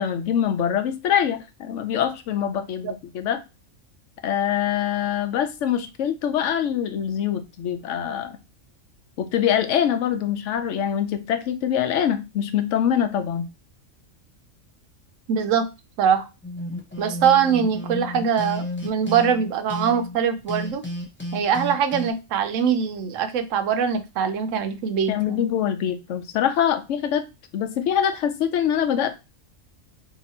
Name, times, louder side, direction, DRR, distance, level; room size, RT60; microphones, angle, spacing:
voice 1, 0.0-3.4 4.2-8.4 9.2-13.5 25.1-27.2 27.5-29.1, left 9 dB, 75° left, 0.9 m, -24 dB
voice 2, 15.3-15.7 16.0-16.3 17.0-20.8 21.3-25.5, right 7 dB, 80° right, 0.9 m, -22 dB
sound 1, 16.4-20.2 20.5-22.1, left 1 dB, 10° left, 0.6 m, -32 dB
2.9 x 2.7 x 4.1 m
omnidirectional pair, 1.3 m